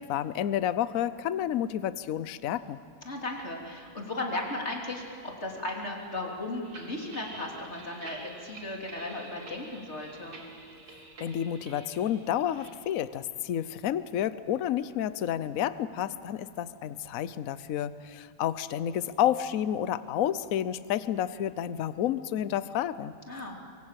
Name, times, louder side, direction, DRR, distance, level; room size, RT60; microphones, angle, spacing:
voice 1, 0.0-2.8 11.2-23.1, left 10 dB, 60° left, 14 dB, 1.1 m, -30 dB
voice 2, 3.1-10.4 23.3-23.6, left 2 dB, 40° left, -1 dB, 3.7 m, -36 dB
sound 1, 6.6-12.7, right 2 dB, 65° right, 3.0 m, -47 dB
25.5 x 24.0 x 7.6 m, 2.5 s
omnidirectional pair, 1.8 m